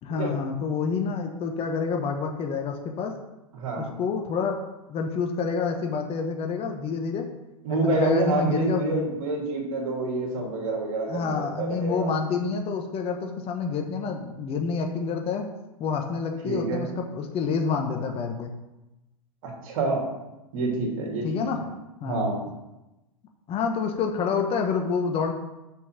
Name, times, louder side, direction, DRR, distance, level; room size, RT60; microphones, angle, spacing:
voice 1, 0.0-3.1 3.8-4.6 4.9-7.3 7.7-9.2 11.1-15.5 15.8-18.5 21.2-21.6 22.0-22.3 23.5-25.3, left 5 dB, 30° left, 4 dB, 1.1 m, -28 dB
voice 2, 3.5-3.9 7.6-12.1 16.4-16.8 19.6-20.0 20.5-21.6 22.0-22.4, right 2 dB, 60° right, -2 dB, 3.0 m, -27 dB
6.1 x 5.5 x 6.1 m, 0.98 s
hypercardioid pair, 105°, 19 cm